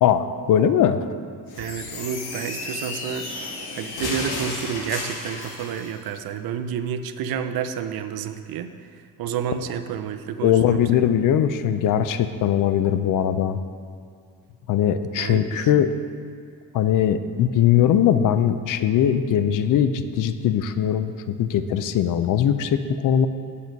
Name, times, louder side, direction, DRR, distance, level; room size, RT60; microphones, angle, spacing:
voice 1, 0.0-1.1 10.4-13.6 14.7-15.9 16.7-23.3, left 9 dB, 55° left, 11 dB, 0.5 m, -20 dB
sound 1, 1.5-5.9, left 2 dB, 85° left, 1.5 m, -33 dB
voice 2, 1.6-3.3 3.7-11.1 15.2-15.9, right 8 dB, 70° right, 9 dB, 0.6 m, -30 dB
8.5 x 6.1 x 5.2 m, 2.2 s
cardioid pair, 150°, 38 cm